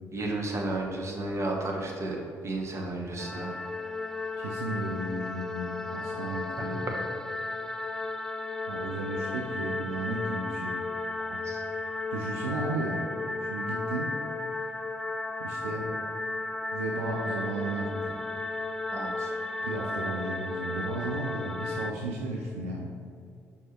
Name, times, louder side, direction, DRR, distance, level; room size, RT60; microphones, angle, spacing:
voice 1, 0.1-3.5 6.1-6.2 6.6-6.7 11.3-11.6 18.9-19.3, right 2 dB, 40° right, -1 dB, 1.3 m, -33 dB
sound 1, 3.2-21.9, left 3 dB, 5° left, 0.3 m, -34 dB
voice 2, 4.4-6.9 8.7-10.8 12.1-13.1 13.4-14.1 15.4-15.9 16.7-18.1 19.6-22.9, right 2 dB, 75° right, -1 dB, 0.5 m, -34 dB
5.5 x 4.6 x 4.4 m, 2.4 s
figure-of-eight pair, 45°, 8 cm